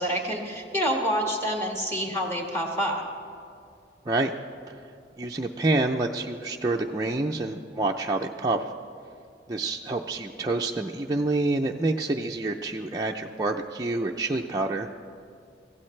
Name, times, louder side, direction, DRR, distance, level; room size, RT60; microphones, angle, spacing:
voice 1, 0.0-3.0, equal, 15° left, 0 dB, 1.8 m, -27 dB
voice 2, 5.2-8.7 9.5-14.9, right 2 dB, 20° right, 0 dB, 0.5 m, -27 dB
25.0 x 15.5 x 3.3 m, 2.4 s
head